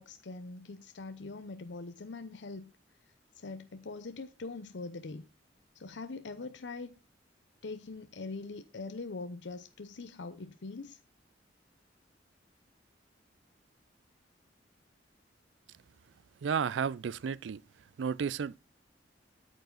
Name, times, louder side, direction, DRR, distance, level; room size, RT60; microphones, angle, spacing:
voice 1, 0.0-2.6 3.4-5.3 5.8-7.0 7.6-11.0, left 3 dB, 70° left, 0.7 m, -42 dB
voice 2, 16.4-17.6 18.0-18.6, right 6 dB, 80° right, 0.4 m, -32 dB
8.9 x 8.0 x 3.9 m
head